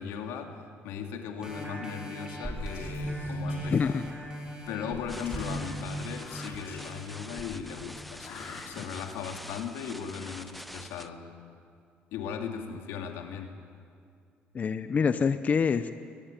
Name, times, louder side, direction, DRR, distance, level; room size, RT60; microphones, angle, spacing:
voice 1, 0.0-4.0 4.7-11.3 12.1-13.6, left 7 dB, 90° left, 3 dB, 2.7 m, -38 dB
sound 1, 1.4-8.6 9.1-9.2, right 1 dB, 20° right, 5.0 m, -38 dB
Whispering, 2.5-4.5 5.3-7.3 8.2-9.2, left 5 dB, 60° left, 4.8 m, -50 dB
voice 2, 3.7-4.1 14.5-15.9, left 6 dB, 35° left, 11 dB, 0.8 m, -26 dB
sound 2, 5.1-11.1, equal, ahead, 0.9 m, -45 dB
24.0 x 17.5 x 9.2 m, 2.3 s
cardioid pair, 100°, 4 cm